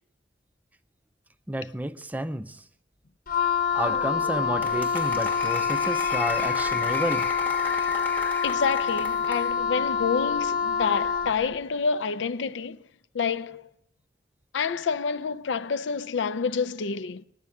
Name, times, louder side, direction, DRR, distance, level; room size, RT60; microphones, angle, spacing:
voice 1, 1.5-2.6 3.7-7.3, right 1 dB, 10° right, 0.5 m, -31 dB
Wind instrument woodwind instrument, 3.3-11.4, left 6 dB, 50° left, 1.0 m, -26 dB
Applause, 3.8-9.6, left 3 dB, 10° left, 0.8 m, -35 dB
voice 2, 8.4-12.8 13.1-13.7 14.5-17.2, left 5 dB, 85° left, 0.5 m, -28 dB
19.0 x 10.5 x 3.6 m
head